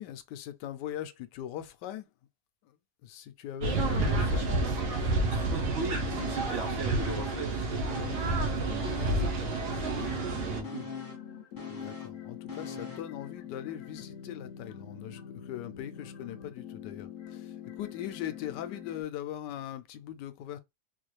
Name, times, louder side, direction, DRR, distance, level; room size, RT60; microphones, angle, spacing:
voice 1, 0.0-2.1 3.0-4.5 11.7-20.6, left 11 dB, 85° left, 1.2 m, -40 dB
sound 1, 3.6-10.6, right 2 dB, 75° right, 1.4 m, -29 dB
voice 2, 5.3-10.9, right 3 dB, 55° right, 1.0 m, -40 dB
sound 2, 6.0-6.7 6.9-8.5 8.8-13.2 13.5-13.6, left 4 dB, 15° left, 1.2 m, -43 dB
sound 3, 10.1-19.0, left 9 dB, 65° left, 0.9 m, -45 dB
4.1 x 2.4 x 3.2 m
omnidirectional pair, 1.8 m